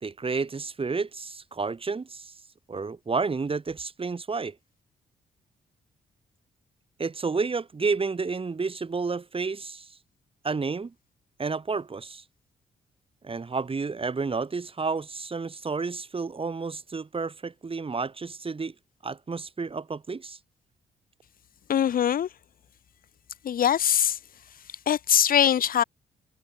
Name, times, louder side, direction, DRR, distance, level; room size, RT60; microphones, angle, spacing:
voice 1, 0.0-2.3 2.7-4.6 7.0-9.9 10.4-10.9 11.4-12.2 13.2-18.7 19.0-20.4, right 4 dB, 35° right, 3.0 m, -30 dB
voice 2, 21.7-22.3 23.4-24.2 24.9-25.8, left 9 dB, 65° left, 1.5 m, -22 dB
supercardioid pair, 60°, 16 cm